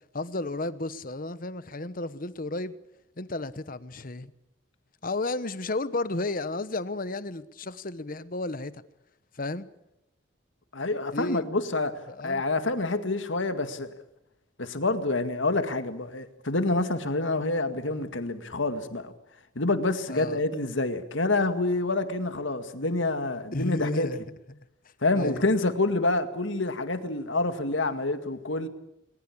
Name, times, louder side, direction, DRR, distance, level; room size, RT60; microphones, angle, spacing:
voice 1, 0.1-2.7 3.2-4.3 5.0-8.8 9.3-9.7 11.1-11.5 12.1-12.4 20.1-20.4 23.5-24.2 24.5-24.6 25.2-25.5, left 2 dB, 45° left, 1.1 m, -33 dB
voice 2, 10.7-13.9 14.6-19.1 19.6-24.1 25.0-28.7, left 2 dB, 75° left, 2.0 m, -27 dB
21.0 x 20.5 x 8.7 m
head